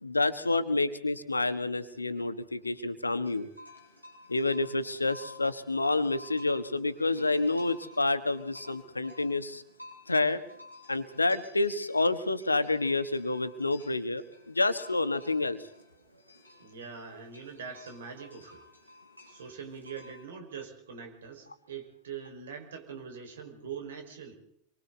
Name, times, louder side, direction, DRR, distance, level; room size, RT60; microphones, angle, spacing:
voice 1, 0.0-3.5 4.3-9.6 10.1-10.4 10.9-15.6, left 2 dB, 80° left, 12 dB, 1.5 m, -29 dB
sound 1, 3.2-20.2, left 1 dB, 90° right, 6.2 m, -53 dB
voice 2, 16.6-18.6 19.3-24.3, right 6 dB, 60° right, 4 dB, 5.2 m, -43 dB
27.5 x 23.5 x 4.1 m, 0.71 s
figure-of-eight pair, 90°, 0 cm